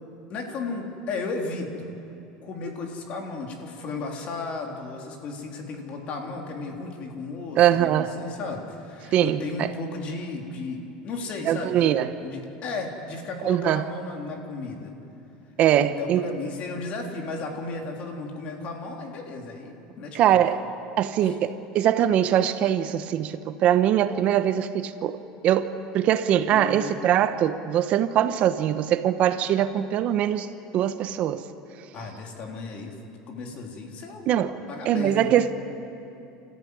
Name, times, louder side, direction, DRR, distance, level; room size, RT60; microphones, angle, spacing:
voice 1, 0.3-1.9 2.4-14.9 15.8-20.4 21.2-21.4 26.5-27.1 31.9-32.9 33.3-34.3 34.7-35.3, left 3 dB, 45° left, 2 dB, 3.6 m, -34 dB
voice 2, 7.6-8.2 9.1-9.7 11.4-12.1 13.4-13.9 15.6-16.2 20.1-20.6 21.0-30.5 30.7-31.4 34.3-34.6 34.8-35.5, right 11 dB, 45° right, 11 dB, 0.9 m, -22 dB
30.0 x 14.5 x 9.6 m, 2.8 s
supercardioid pair, 140°, 3 cm